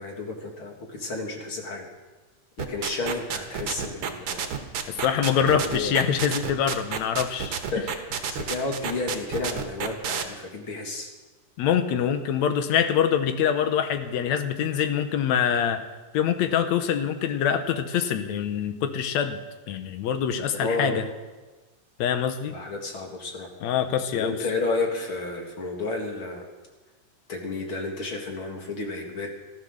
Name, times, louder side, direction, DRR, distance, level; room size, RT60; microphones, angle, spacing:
voice 1, 0.0-1.8 2.6-4.5 5.3-5.9 7.7-7.8 8.3-11.1 20.6-21.0 22.5-23.5 24.1-26.4 27.3-29.3, left 3 dB, 45° left, 1 dB, 2.7 m, -31 dB
sound 1, 2.6-10.2, right 7 dB, 55° right, 1.9 m, -30 dB
voice 2, 5.0-7.6 11.6-15.8 16.1-19.4 19.7-21.1 22.0-22.5 23.6-24.4, left 8 dB, 70° left, 9 dB, 2.3 m, -24 dB
14.0 x 14.0 x 6.5 m, 1.2 s
omnidirectional pair, 3.5 m